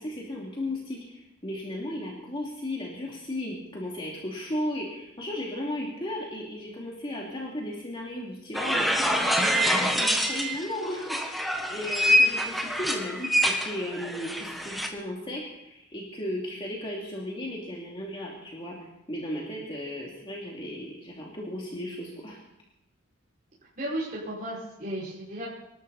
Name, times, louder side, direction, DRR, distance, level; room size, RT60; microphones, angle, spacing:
voice 1, 0.0-18.8 19.1-22.4, left 1 dB, 25° left, -3 dB, 2.7 m, -35 dB
sound 1, 8.5-10.6 11.0-14.9, equal, ahead, 1.4 m, -25 dB
voice 2, 23.8-25.5, right 1 dB, 40° right, -8 dB, 5.7 m, -34 dB
25.5 x 12.5 x 4.2 m, 0.84 s
head